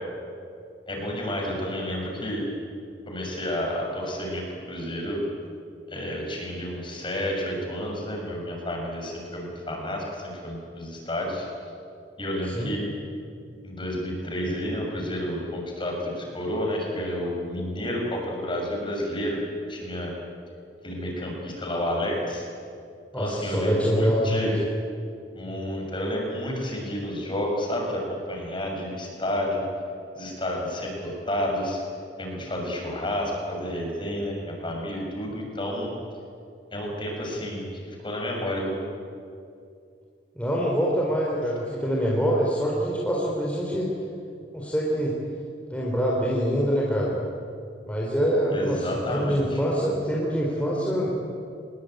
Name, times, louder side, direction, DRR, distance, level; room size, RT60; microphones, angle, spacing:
voice 1, 0.9-2.4 3.1-5.2 5.9-11.5 12.2-12.8 13.6-19.4 19.7-20.1 20.8-22.5 23.2-24.5 25.3-29.6 30.1-31.8 32.2-35.9 36.7-38.8 48.5-49.6, left 1 dB, 25° left, 0 dB, 7.0 m, -30 dB
voice 2, 12.4-12.7 23.1-24.4 40.4-43.9 44.5-45.1 45.7-47.2 47.9-51.2, equal, 5° left, -4 dB, 3.9 m, -25 dB
26.0 x 21.5 x 9.3 m, 2.4 s
head